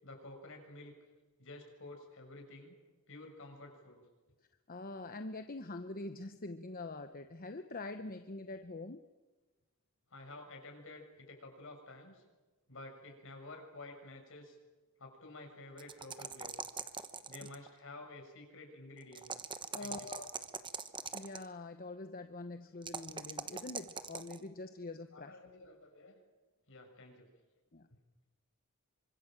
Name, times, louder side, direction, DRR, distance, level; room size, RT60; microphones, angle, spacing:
voice 1, 0.0-0.9 1.4-2.8 3.1-4.0 10.1-12.2 12.7-14.6 15.0-16.7 17.3-19.3 19.8-20.1 25.1-26.2 26.7-27.3, left 2 dB, 65° left, 4 dB, 6.4 m, -51 dB
voice 2, 4.7-9.0 19.7-20.3 21.1-25.4 27.7-27.9, left 2 dB, 45° left, 8 dB, 1.0 m, -44 dB
sound 1, 15.8-17.7 19.1-21.4 22.8-24.4, right 5 dB, 25° right, 1.1 m, -42 dB
27.0 x 25.0 x 7.6 m, 1.2 s
head